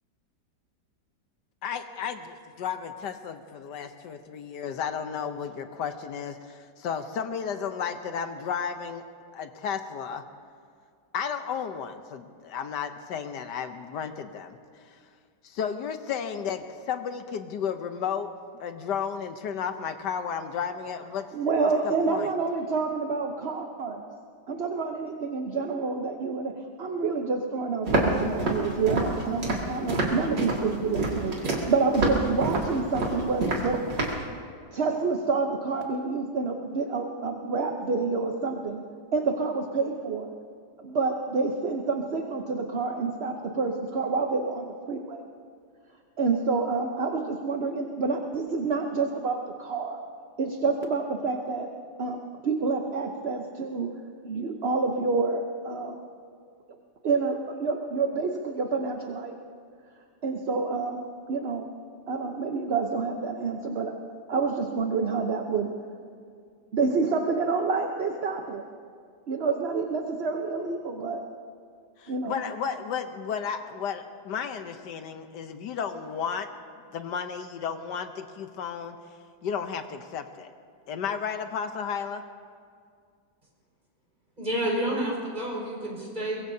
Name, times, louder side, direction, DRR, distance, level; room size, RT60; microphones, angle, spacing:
voice 1, 1.6-9.0 9.3-10.2 11.1-14.6 15.4-18.3 18.6-21.3 22.1-22.3 72.0-76.5 76.9-79.0 79.4-80.5 80.9-82.2, left 7 dB, 80° left, 8 dB, 1.4 m, -33 dB
voice 2, 21.3-24.1 24.5-33.8 34.7-38.8 39.1-40.3 40.8-45.2 46.2-50.0 50.4-51.7 52.0-53.9 54.2-56.0 57.0-59.3 60.2-61.7 62.1-63.9 64.3-65.7 66.7-68.6 69.3-71.2 72.1-72.4, right 4 dB, 45° right, 3 dB, 1.0 m, -28 dB
Walk footsteps, 27.9-34.2, right 2 dB, 85° right, 3.0 m, -27 dB
voice 3, 84.4-86.4, right 1 dB, 25° right, -4 dB, 5.1 m, -29 dB
23.0 x 22.0 x 2.8 m, 2.2 s
omnidirectional pair, 1.9 m